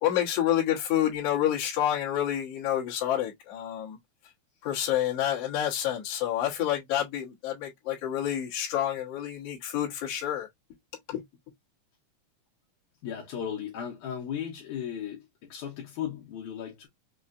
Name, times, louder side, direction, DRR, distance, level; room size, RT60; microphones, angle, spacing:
voice 1, 0.0-4.0 4.6-10.5 11.1-11.2, left 11 dB, 60° left, 2.2 m, -28 dB
voice 2, 13.0-16.9, left 9 dB, 75° left, 2.3 m, -36 dB
5.6 x 2.4 x 2.5 m
omnidirectional pair, 3.6 m